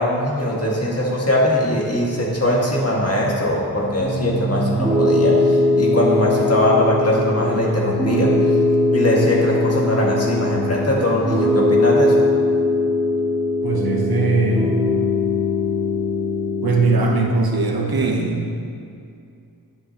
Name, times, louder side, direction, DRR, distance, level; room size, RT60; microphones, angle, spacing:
voice 1, 0.0-8.3 8.9-12.2, left 1 dB, 40° left, -3 dB, 1.9 m, -20 dB
Piano, 4.0-17.1, left 2 dB, 5° right, 1.7 m, -20 dB
voice 2, 13.6-14.9 16.6-18.4, right 3 dB, 85° right, 2 dB, 1.0 m, -20 dB
10.5 x 8.0 x 2.9 m, 2.4 s
wide cardioid pair, 50°, 36 cm